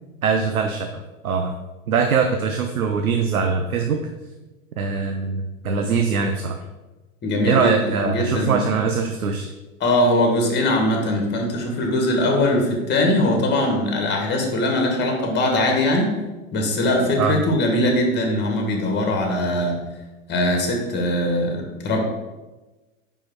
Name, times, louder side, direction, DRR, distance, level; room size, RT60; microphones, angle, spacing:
voice 1, 0.2-1.5 1.9-4.1 4.8-6.6 7.4-9.5 17.2-17.4, right 5 dB, 90° right, 5 dB, 0.6 m, -22 dB
voice 2, 7.2-8.6 9.8-16.2 16.5-19.8 20.3-22.0, left 1 dB, 25° left, 2 dB, 1.5 m, -21 dB
5.0 x 4.9 x 4.6 m, 1.2 s
hypercardioid pair, 95°, 41 cm